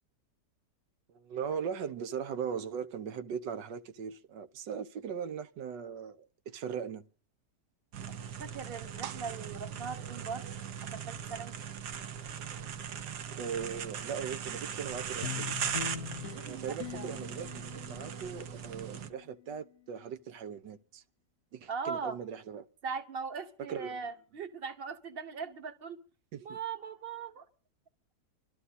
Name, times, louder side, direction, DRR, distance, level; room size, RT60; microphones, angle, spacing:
voice 1, 1.1-7.1 13.4-15.6 16.5-21.0 21.5-22.6 23.7-24.0 26.3-26.6, right 7 dB, 85° right, 1.6 m, -39 dB
sound 1, 7.9-19.1, right 8 dB, 70° right, 1.5 m, -39 dB
voice 2, 8.4-10.5 10.8-11.5 16.3-17.1 21.7-22.2 22.8-26.0 26.4-27.4, right 5 dB, 35° right, 1.2 m, -40 dB
sound 2, 15.2-19.9, left 10 dB, 60° left, 1.3 m, -43 dB
24.0 x 13.0 x 4.1 m
omnidirectional pair, 1.9 m